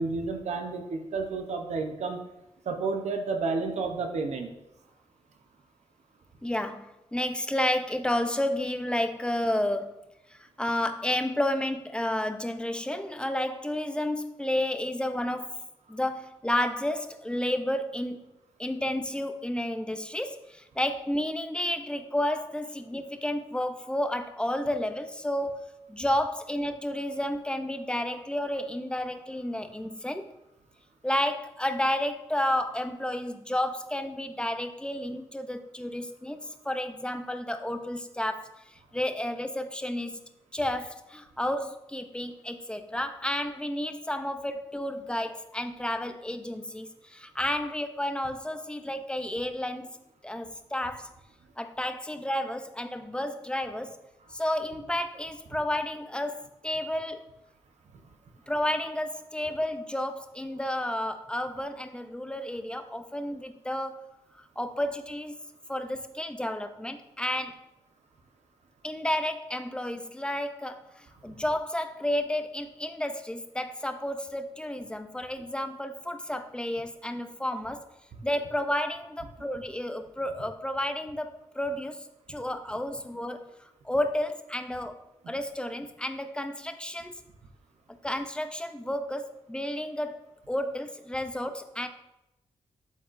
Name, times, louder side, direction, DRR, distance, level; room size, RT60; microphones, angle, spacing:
voice 1, 0.0-2.2 2.7-4.5 71.3-71.4, right 4 dB, 80° right, 5 dB, 0.8 m, -31 dB
voice 2, 6.4-10.0 10.3-15.6 15.9-18.2 18.6-30.3 31.0-38.5 38.9-40.2 40.5-50.0 50.2-51.1 51.6-54.0 54.3-57.2 58.5-64.1 64.3-65.3 65.7-67.5 68.8-77.8 78.2-83.4 83.8-85.0 85.3-87.1 88.0-91.9, left 1 dB, 10° left, 7 dB, 0.6 m, -31 dB
12.0 x 4.1 x 2.6 m, 0.90 s
cardioid pair, 70°, 11 cm